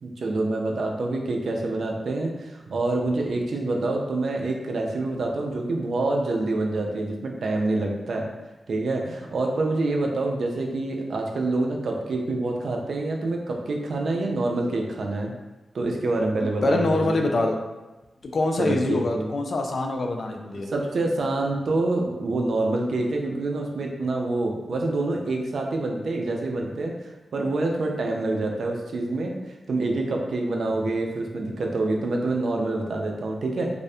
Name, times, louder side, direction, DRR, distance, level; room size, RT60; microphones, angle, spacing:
voice 1, 0.0-8.3 8.7-15.3 15.7-17.1 18.6-19.3 20.7-27.0 27.3-29.3 29.7-33.7, right 2 dB, 75° right, 1 dB, 0.4 m, -26 dB
voice 2, 16.4-17.6 18.3-20.7, left 2 dB, 65° left, 3 dB, 0.3 m, -25 dB
2.4 x 2.0 x 2.6 m, 1.1 s
cardioid pair, 50°, 0 cm